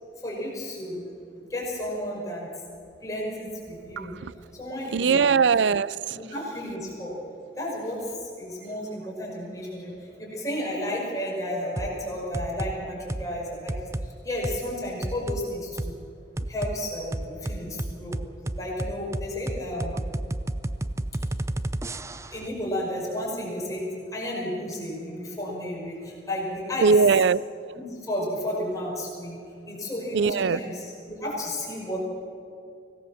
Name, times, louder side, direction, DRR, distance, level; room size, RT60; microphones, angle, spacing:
voice 1, 0.2-2.5 3.0-4.1 4.5-5.4 6.1-7.2 7.6-15.9 16.5-18.2 18.6-20.0 22.3-27.0 27.7-29.4 29.7-32.1, left 1 dB, 20° left, 5.6 m, -32 dB
voice 2, 4.9-6.2 26.8-27.4 30.1-30.6, right 5 dB, 75° right, 0.5 m, -20 dB
sound 1, 11.8-11.9 12.3-12.7 13.1-13.3 13.7-14.1 14.4-14.6 15.0-15.4 15.8-15.9 16.4-16.8 17.1-22.4, right 1 dB, 15° right, 0.5 m, -31 dB
24.5 x 17.5 x 7.2 m
head